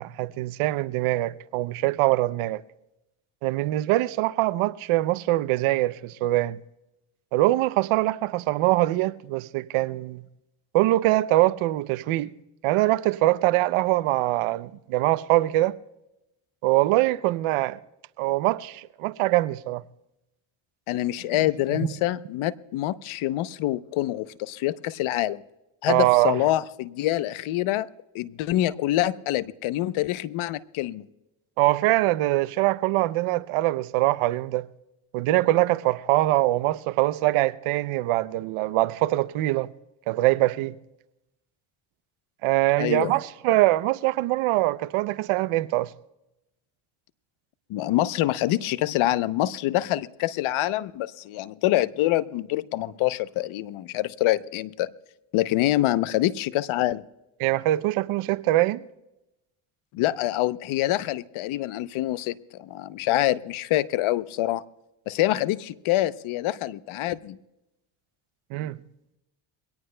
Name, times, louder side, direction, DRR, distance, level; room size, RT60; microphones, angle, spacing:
voice 1, 0.0-2.6 3.4-6.6 7.3-10.2 10.7-12.3 12.6-15.8 16.6-17.8 18.2-19.8 21.7-21.8 25.9-26.4 31.6-34.7 35.1-39.7 40.1-40.8 42.4-45.9 57.4-58.8 68.5-68.8, right 17 dB, 80° right, 0.7 m, -23 dB
voice 2, 20.9-25.4 25.8-27.9 28.1-31.0 42.8-43.1 47.7-54.9 55.3-57.0 59.9-64.6 65.1-67.4, left 15 dB, 75° left, 0.8 m, -26 dB
23.0 x 17.5 x 2.2 m
supercardioid pair, 80°, 49 cm